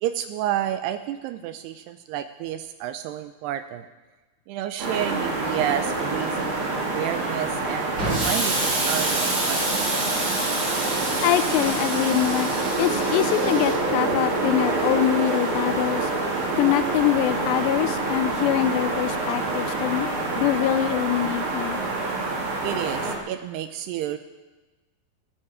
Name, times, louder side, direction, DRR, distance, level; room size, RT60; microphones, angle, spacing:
voice 1, 0.0-3.8 4.5-10.2 22.6-24.2, right 11 dB, 80° right, 10 dB, 2.4 m, -30 dB
sound 1, 4.8-23.2, right 3 dB, 50° right, 3.5 m, -26 dB
Explosion, 8.0-13.7, right 1 dB, 25° right, 3.6 m, -28 dB
voice 2, 11.2-12.5 12.8-16.1 16.6-20.1 20.4-21.8, left 14 dB, 80° left, 13 dB, 2.6 m, -24 dB
22.5 x 8.7 x 4.9 m, 1.2 s
omnidirectional pair, 5.3 m